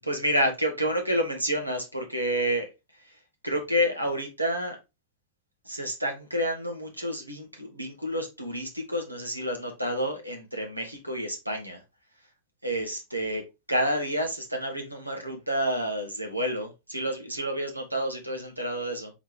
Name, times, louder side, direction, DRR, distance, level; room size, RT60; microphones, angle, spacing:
voice 1, 0.0-2.7 3.0-3.2 3.4-4.8 5.6-11.8 12.6-13.4 13.7-19.1, equal, 85° right, 1.2 m, -29 dB
4.0 x 3.1 x 3.6 m
figure-of-eight pair, 90°, 0 cm